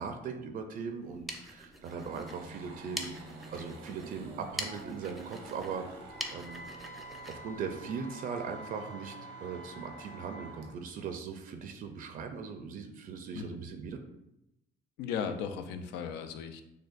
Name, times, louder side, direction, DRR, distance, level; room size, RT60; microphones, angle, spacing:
voice 1, 0.0-3.2 3.5-5.8 6.3-6.6 7.3-9.2 9.4-14.0, right 5 dB, 55° right, 6 dB, 0.4 m, -39 dB
sound 1, 1.0-8.5, right 1 dB, ahead, 0.5 m, -45 dB
sound 2, 1.9-10.7, right 3 dB, 90° right, 0.8 m, -50 dB
Wind instrument woodwind instrument, 6.0-10.6, right 1 dB, 50° left, 1.1 m, -48 dB
voice 2, 15.0-16.6, left 7 dB, 90° left, 8 dB, 0.4 m, -36 dB
6.4 x 2.2 x 2.5 m, 0.87 s
cardioid pair, 110°, 17 cm